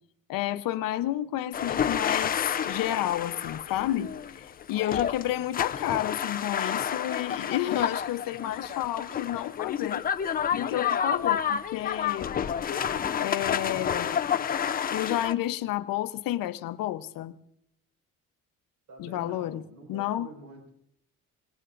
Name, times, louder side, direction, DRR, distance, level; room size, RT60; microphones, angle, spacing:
voice 1, 0.3-2.4 2.6-10.1 10.5-12.3 13.2-14.1 14.9-17.4 19.0-19.6 19.9-20.3, left 13 dB, 90° left, 11 dB, 0.9 m, -30 dB
sound 1, 1.5-15.3, left 8 dB, 25° left, 0.5 m, -30 dB
voice 2, 18.9-20.7, right 2 dB, 50° right, 3 dB, 5.3 m, -47 dB
25.5 x 20.0 x 2.6 m, 0.73 s
cardioid pair, 170°, 33 cm